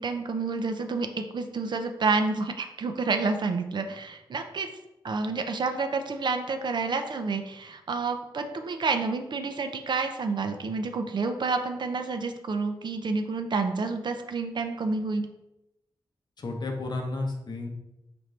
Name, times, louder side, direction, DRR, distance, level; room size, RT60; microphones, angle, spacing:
voice 1, 0.0-4.7 5.0-15.3, right 4 dB, 55° right, 6 dB, 0.4 m, -29 dB
voice 2, 16.4-17.7, left 2 dB, 55° left, 3 dB, 0.7 m, -32 dB
4.3 x 2.6 x 3.2 m, 0.92 s
cardioid pair, 70°, 9 cm